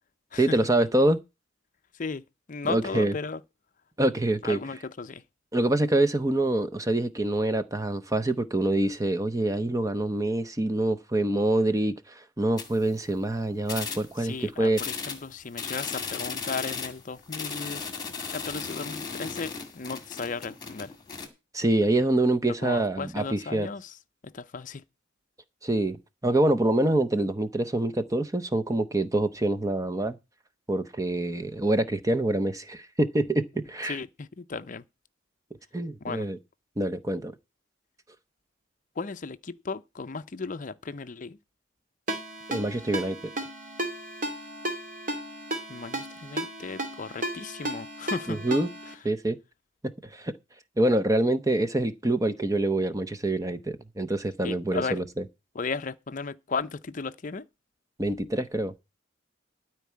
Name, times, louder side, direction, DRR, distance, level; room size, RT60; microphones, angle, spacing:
voice 1, 0.4-1.2 2.7-3.1 4.0-4.6 5.5-14.8 21.5-23.7 25.6-26.0 26.2-30.2 30.7-33.4 33.7-34.0 35.7-36.4 36.8-37.3 42.5-43.2 48.3-48.7 49.0-49.4 50.1-50.3 50.8-55.0 58.0-58.7, right 1 dB, 15° right, 0.7 m, -25 dB
voice 2, 1.9-3.4 4.4-5.2 14.2-20.9 22.6-24.0 24.2-24.8 33.9-34.8 36.0-36.3 39.0-41.4 45.7-48.4 48.9-49.1 54.4-55.0 55.5-57.5, left 4 dB, 40° left, 0.5 m, -35 dB
sound 1, 12.6-13.2 13.6-14.4 14.7-21.3, left 5 dB, 20° left, 2.0 m, -36 dB
Ringtone, 42.1-48.9, right 1 dB, 40° right, 2.5 m, -34 dB
13.0 x 4.6 x 8.4 m
head